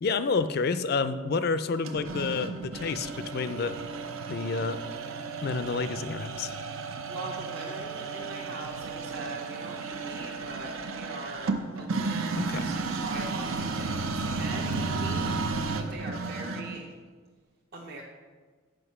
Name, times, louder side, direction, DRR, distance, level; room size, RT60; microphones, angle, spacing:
voice 1, 0.0-3.8 4.3-4.8 5.4-6.6 12.4-12.7, left 4 dB, 50° left, 12 dB, 0.4 m, -29 dB
sound 1, 1.8-16.8, right 4 dB, 80° right, 0.6 m, -33 dB
voice 2, 7.1-16.8 17.7-18.0, right 2 dB, 50° right, -2 dB, 0.8 m, -41 dB
7.8 x 5.2 x 5.5 m, 1.5 s
head